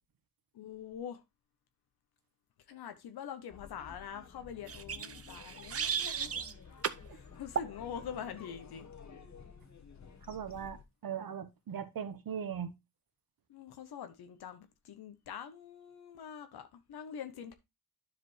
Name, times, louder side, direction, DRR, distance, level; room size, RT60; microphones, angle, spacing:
voice 1, 0.5-1.2 2.7-6.4 7.1-8.9 13.5-17.5, left 8 dB, 90° left, 0.9 m, -45 dB
sound 1, 3.5-10.8, left 5 dB, 45° left, 1.3 m, -52 dB
sound 2, 4.7-6.5 6.8-7.0 7.5-7.7, right 7 dB, 40° right, 0.6 m, -35 dB
voice 2, 10.3-10.8 11.0-12.7, right 8 dB, 65° right, 1.1 m, -39 dB
10.5 x 5.0 x 3.1 m
cardioid pair, 65°, 37 cm